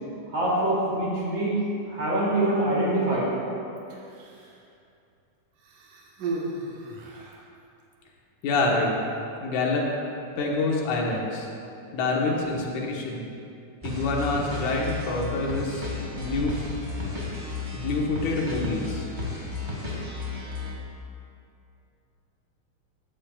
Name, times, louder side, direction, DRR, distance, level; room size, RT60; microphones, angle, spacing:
voice 1, 0.3-1.5 1.9-3.3, right 1 dB, 40° right, -7 dB, 3.1 m, -24 dB
Human voice, 3.8-4.7 5.6-7.5 8.4-8.6, right 2 dB, 80° right, 2.6 m, -36 dB
voice 2, 8.4-8.9 9.4-9.9 10.4-11.5 11.9-13.3 13.8-15.9 16.1-16.5 17.7-19.1, left 3 dB, 75° left, -2 dB, 2.6 m, -26 dB
sound 1, 13.8-20.8, left 3 dB, 20° right, 1.5 m, -33 dB
13.5 x 10.5 x 2.3 m, 2.6 s
omnidirectional pair, 3.6 m